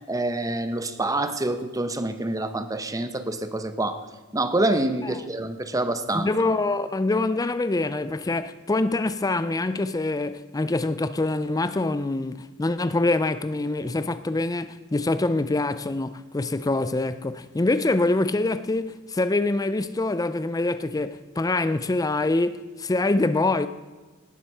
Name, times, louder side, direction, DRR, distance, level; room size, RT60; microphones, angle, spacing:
voice 1, 0.1-4.0 4.3-6.3, right 2 dB, 15° right, 0.8 m, -26 dB
voice 2, 6.1-23.7, left 2 dB, 15° left, 0.4 m, -25 dB
18.5 x 7.9 x 5.6 m
head